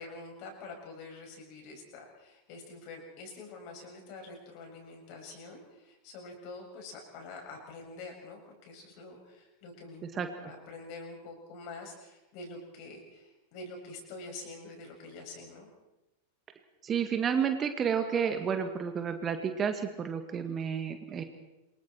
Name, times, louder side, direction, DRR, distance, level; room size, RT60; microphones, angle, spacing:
voice 1, 0.0-15.7, left 3 dB, 45° left, 2 dB, 7.2 m, -46 dB
voice 2, 16.8-21.2, right 7 dB, 25° right, 7 dB, 2.0 m, -30 dB
28.5 x 23.5 x 4.6 m, 1.0 s
figure-of-eight pair, 90°, 0 cm